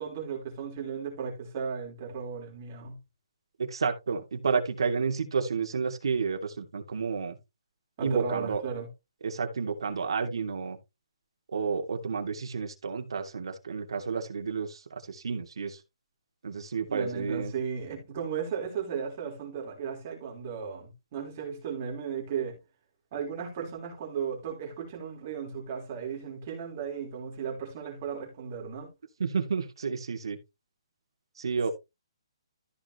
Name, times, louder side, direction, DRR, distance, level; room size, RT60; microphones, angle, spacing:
voice 1, 0.0-3.0 8.0-8.9 16.9-22.6 23.1-28.9, right 6 dB, 25° right, 3.6 m, -35 dB
voice 2, 3.6-7.4 8.0-8.6 9.2-10.8 11.5-15.8 16.4-17.5 29.2-30.4 31.4-31.7, right 5 dB, 55° right, 2.7 m, -31 dB
14.0 x 5.1 x 3.2 m
hypercardioid pair, 180°, 3 cm